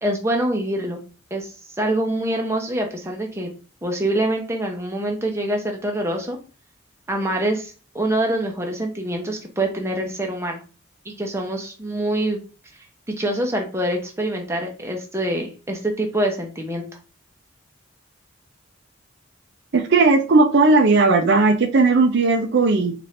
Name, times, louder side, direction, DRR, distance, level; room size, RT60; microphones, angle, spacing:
voice 1, 0.0-1.0 1.3-3.5 3.8-6.4 7.1-10.6 11.0-12.4 13.2-16.9, right 1 dB, 15° right, 2 dB, 0.6 m, -25 dB
voice 2, 19.7-22.9, right 3 dB, 55° right, 6 dB, 0.5 m, -16 dB
4.2 x 2.5 x 3.2 m, 0.36 s
head